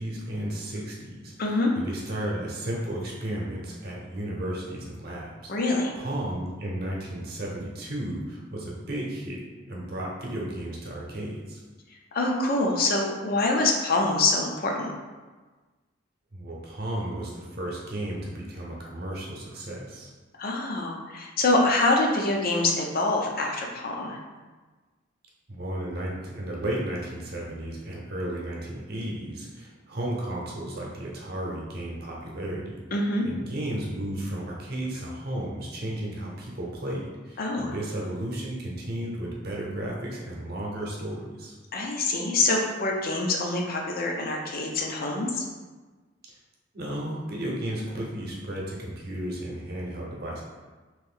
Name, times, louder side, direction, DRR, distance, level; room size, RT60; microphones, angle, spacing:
voice 1, 0.0-1.3 1.7-5.5 6.0-9.4 9.7-11.6 16.3-20.1 25.5-32.8 33.2-41.5 46.7-50.4, right 1 dB, 55° right, -3 dB, 0.8 m, -33 dB
voice 2, 1.4-1.7 5.5-5.9 12.1-14.9 20.4-24.2 32.9-33.3 37.4-37.7 41.7-45.4, left 2 dB, 50° left, 0 dB, 0.5 m, -25 dB
3.0 x 2.6 x 3.7 m, 1.3 s
head